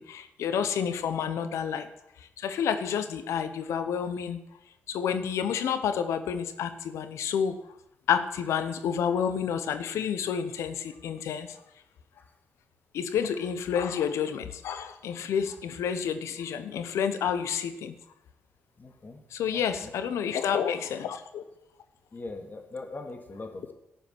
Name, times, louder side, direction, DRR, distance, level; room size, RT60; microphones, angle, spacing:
voice 1, 0.0-1.9 2.2-4.4 4.9-7.6 8.1-11.6 12.9-17.9 19.3-21.4, left 7 dB, 85° left, 10 dB, 0.9 m, -29 dB
voice 2, 18.8-19.2 19.5-19.9 22.1-23.7, left 3 dB, 40° left, 4 dB, 2.4 m, -41 dB
13.0 x 5.6 x 8.8 m, 0.87 s
cardioid pair, 60°, 5 cm